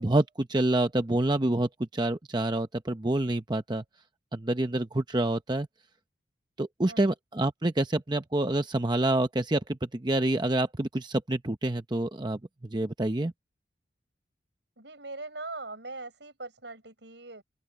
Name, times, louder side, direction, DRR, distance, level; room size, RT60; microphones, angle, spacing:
voice 1, 0.0-3.8 4.3-5.7 6.6-12.4 12.7-13.3, right 1 dB, 25° right, 0.7 m, -27 dB
voice 2, 14.8-17.4, right 3 dB, 70° right, 6.5 m, -41 dB
open air
head